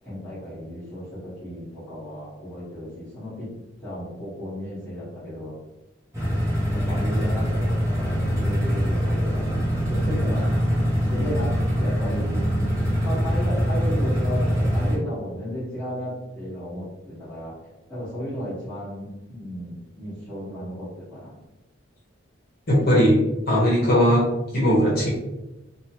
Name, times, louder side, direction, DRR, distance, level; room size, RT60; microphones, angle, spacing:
voice 1, 0.0-3.5 3.8-5.6 6.7-10.8 11.1-21.4, equal, 5° left, -11 dB, 1.3 m, -34 dB
sound 1, 6.1-15.0, equal, 15° right, 0.8 m, -23 dB
voice 2, 22.7-23.2 23.5-24.2 24.5-25.1, equal, 50° left, -6 dB, 0.9 m, -18 dB
3.0 x 2.2 x 2.8 m, 0.98 s
head